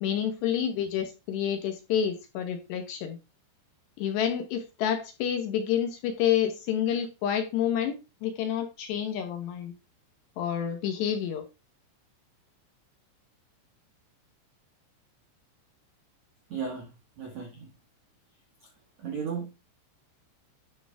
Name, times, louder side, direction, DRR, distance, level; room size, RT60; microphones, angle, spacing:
voice 1, 0.0-3.2 4.0-9.7 10.4-11.4, left 9 dB, 70° left, 2.8 m, -29 dB
voice 2, 16.5-17.7 19.0-19.5, right 6 dB, 70° right, 1.7 m, -35 dB
12.5 x 5.0 x 3.5 m
omnidirectional pair, 5.8 m